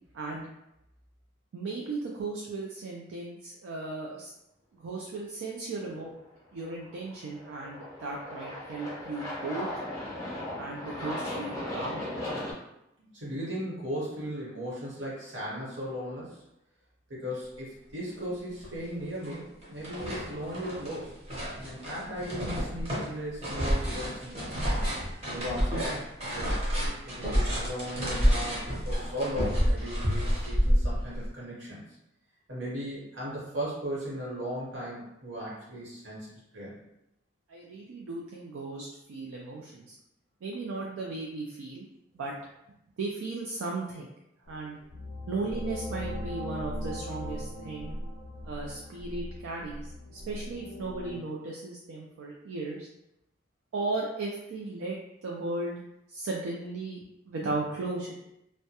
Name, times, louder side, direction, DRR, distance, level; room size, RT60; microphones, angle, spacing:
voice 1, 0.1-0.5 1.5-4.3 4.7-6.1 6.5-9.7 10.6-12.1 37.5-40.0 40.4-41.9 42.1-42.3 43.0-44.1 44.5-44.8 45.3-47.9 48.4-52.9 53.7-55.0 55.2-55.8 56.1-57.0 57.3-58.2, right 3 dB, 80° right, -3 dB, 0.4 m, -36 dB
Aircraft, 6.8-12.5, left 1 dB, 15° left, 0.5 m, -37 dB
voice 2, 13.0-16.4 17.1-21.1 21.6-24.5 25.2-26.7 27.0-31.8 32.5-36.8, equal, 65° right, -6 dB, 1.0 m, -37 dB
sound 1, 18.2-18.3 18.6-19.4 19.6-31.3, equal, 30° right, 0.7 m, -29 dB
sound 2, 44.5-51.2, left 1 dB, 70° left, 0.4 m, -39 dB
2.2 x 2.1 x 2.8 m, 0.86 s
head